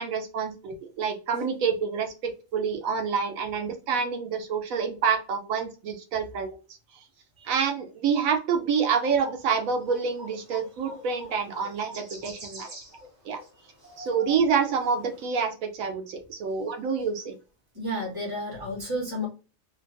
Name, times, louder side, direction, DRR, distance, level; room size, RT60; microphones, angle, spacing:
voice 1, 0.0-2.1 2.5-6.5 7.4-12.7 13.2-13.4 14.0-17.3, right 6 dB, 80° right, 5 dB, 1.0 m, -27 dB
sound 1, 8.9-15.3, equal, 60° right, 1.3 m, -45 dB
voice 2, 17.7-19.3, equal, 15° right, -4 dB, 1.3 m, -32 dB
3.4 x 2.2 x 2.5 m, 0.33 s
omnidirectional pair, 1.4 m